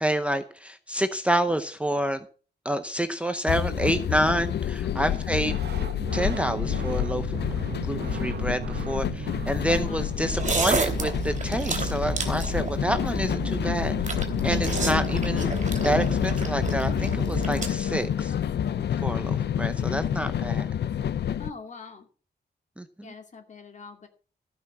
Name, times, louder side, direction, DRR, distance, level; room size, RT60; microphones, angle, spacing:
voice 1, 0.0-2.3 2.6-5.5 6.1-7.4 7.9-13.9 14.4-15.5 15.8-18.3 19.0-20.7 22.8-23.1, right 1 dB, 5° right, 9 dB, 0.7 m, -28 dB
sound 1, 3.5-21.5, left 10 dB, 75° left, 0.5 m, -28 dB
voice 2, 5.0-5.5 9.6-10.1 21.4-22.1 23.0-24.1, left 4 dB, 45° left, 4 dB, 2.5 m, -42 dB
sound 2, 5.0-15.4 17.5-17.6 17.8-19.6, right 8 dB, 70° right, 0.9 m, -40 dB
sound 3, 10.3-17.7, right 4 dB, 45° right, 2.9 m, -30 dB
15.0 x 5.9 x 7.3 m, 0.40 s
wide cardioid pair, 165°, 18 cm